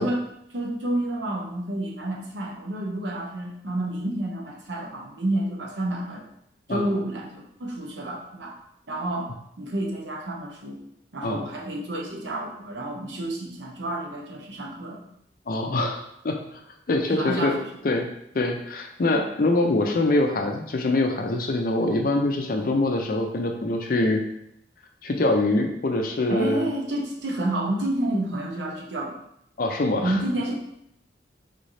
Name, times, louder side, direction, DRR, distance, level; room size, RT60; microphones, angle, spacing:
voice 1, 0.0-6.3 6.7-8.6 8.9-10.8 11.1-15.1 17.1-17.8 26.3-29.1 30.0-30.6, right 1 dB, 75° right, -1 dB, 0.7 m, -29 dB
voice 2, 15.5-16.4 16.9-17.5 17.8-18.1 18.3-24.2 25.0-26.6 29.6-30.1, left 2 dB, 50° left, 3 dB, 0.4 m, -24 dB
3.7 x 3.2 x 2.6 m, 0.77 s
head